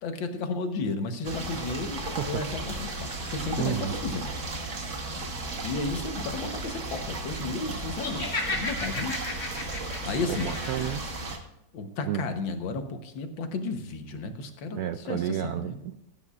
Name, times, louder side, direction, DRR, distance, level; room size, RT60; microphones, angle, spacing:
voice 1, 0.0-4.3 4.7-4.9 5.6-9.2 10.0-10.5 11.7-15.8, left 3 dB, 85° left, 7 dB, 1.9 m, -33 dB
sound 1, 1.2-11.4, right 2 dB, 45° right, 1.5 m, -35 dB
voice 2, 3.6-4.0 10.3-11.0 12.1-12.2 14.7-15.9, right 11 dB, 70° right, 9 dB, 0.9 m, -31 dB
Laughter, 8.0-11.0, left 2 dB, 50° left, 2.4 m, -34 dB
15.5 x 9.2 x 2.4 m, 0.87 s
omnidirectional pair, 2.0 m